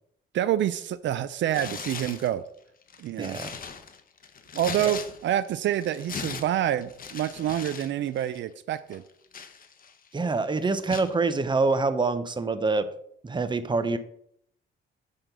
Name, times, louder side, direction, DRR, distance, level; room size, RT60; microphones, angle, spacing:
voice 1, 0.3-2.4 3.0-3.4 4.5-9.0, right 11 dB, 70° right, 13 dB, 0.5 m, -27 dB
Tearing, 1.5-2.3 2.8-5.5 5.8-7.9 8.2-8.4 8.9-10.1 10.9-11.1, left 6 dB, 45° left, 1.0 m, -39 dB
voice 2, 3.2-3.6 4.8-4.9 10.1-12.9 13.2-14.0, right 3 dB, 25° right, 11 dB, 0.9 m, -26 dB
9.0 x 3.8 x 6.7 m, 0.69 s
cardioid pair, 90°, 20 cm